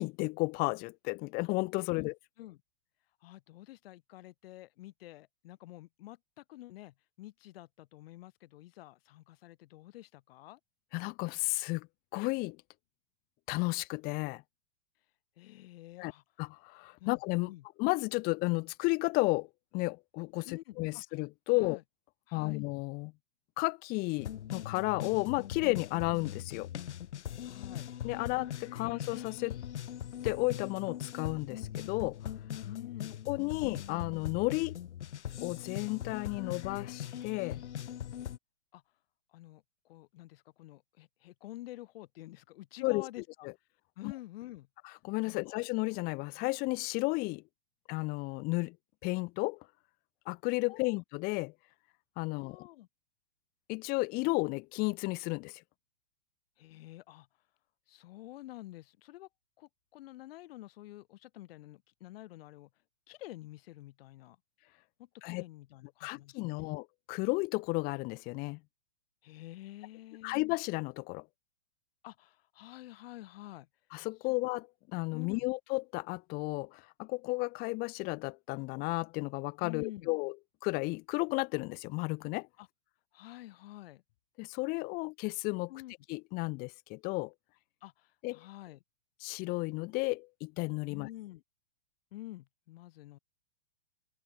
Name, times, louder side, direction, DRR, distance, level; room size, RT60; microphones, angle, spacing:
voice 1, 0.0-2.1 10.9-11.9 12.1-12.6 13.5-14.4 16.0-16.1 16.4-17.5 17.8-19.5 19.7-21.8 22.3-23.1 23.6-26.7 28.0-29.6 30.2-32.2 33.3-34.8 35.4-37.6 42.8-43.1 44.0-44.1 45.0-47.4 47.9-48.8 49.0-49.6 50.3-51.5 52.2-52.7 53.7-55.6 65.2-65.4 66.0-68.6 70.2-71.3 73.9-80.3 80.6-82.5 84.4-85.7 86.1-87.3 88.2-88.4 89.2-91.1, left 26 dB, 25° left, 0.6 m, -33 dB
voice 2, 2.0-2.6 3.2-10.6 15.4-16.2 17.0-17.6 20.5-21.0 21.5-21.8 22.3-22.6 27.4-27.9 32.6-33.2 38.7-38.8 39.3-43.5 44.0-44.7 45.2-45.6 50.7-51.0 52.3-52.9 56.6-57.3 57.9-59.3 59.6-62.7 63.1-64.4 65.0-66.7 69.2-70.4 72.0-73.7 75.1-75.5 79.6-80.1 82.6-82.7 83.1-84.0 85.7-85.9 87.8-88.8 90.9-91.4 92.1-93.2, left 16 dB, 55° left, 3.6 m, -49 dB
sound 1, 24.2-38.4, left 10 dB, 75° left, 2.0 m, -41 dB
hypercardioid pair, 130°, 35 cm